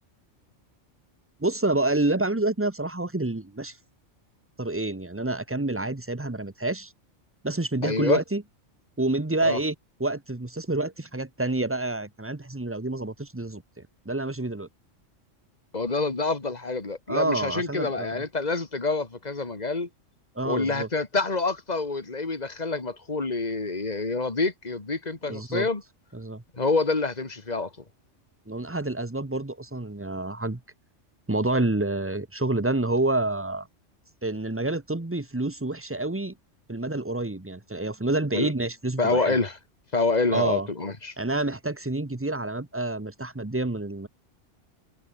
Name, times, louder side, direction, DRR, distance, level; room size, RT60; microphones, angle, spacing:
voice 1, 1.4-3.8 4.6-6.9 7.4-8.4 9.0-9.7 10.0-13.6 14.0-14.7 17.1-18.2 20.4-20.9 25.3-25.7 26.1-26.4 28.5-30.6 31.3-33.7 34.2-36.3 36.7-39.4 40.3-40.7 41.2-44.1, right 2 dB, 10° right, 1.0 m, -28 dB
voice 2, 7.8-8.2 9.4-9.6 15.7-19.9 20.4-25.8 26.5-27.7 38.3-38.5 39.0-39.6 39.9-41.1, left 3 dB, 35° left, 2.4 m, -27 dB
omnidirectional pair, 1.3 m